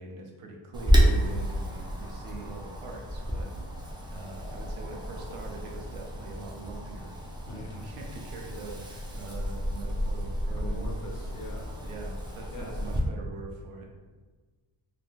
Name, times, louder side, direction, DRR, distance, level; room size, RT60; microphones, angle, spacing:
voice 1, 0.0-3.6 4.1-7.1 7.5-10.8 11.8-13.9, right 3 dB, 85° right, 1 dB, 0.7 m, -43 dB
Wind, 0.7-13.0, equal, 10° right, 0.3 m, -30 dB
voice 2, 7.5-7.9 10.5-11.7 12.5-12.8, left 1 dB, 40° left, 0 dB, 0.6 m, -41 dB
2.4 x 2.1 x 2.9 m, 1.3 s
cardioid pair, 85°, 49 cm